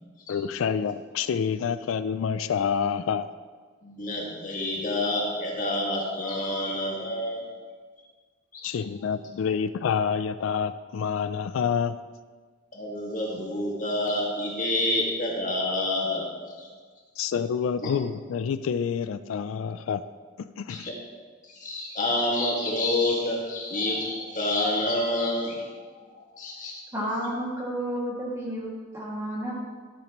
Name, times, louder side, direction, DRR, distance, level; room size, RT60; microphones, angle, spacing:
voice 1, 0.3-3.3 8.6-12.0 17.2-20.0 20.4-20.9, left 7 dB, 90° left, 12 dB, 0.3 m, -28 dB
voice 2, 3.8-7.4 8.5-8.7 9.0-9.1 12.7-16.3 16.6-16.7 17.8-17.9 20.7-20.9 21.5-25.8 26.4-26.8, left 1 dB, 40° left, -3 dB, 2.0 m, -28 dB
voice 3, 26.9-29.5, equal, 15° right, -5 dB, 2.1 m, -31 dB
12.5 x 8.4 x 3.0 m, 1.5 s
head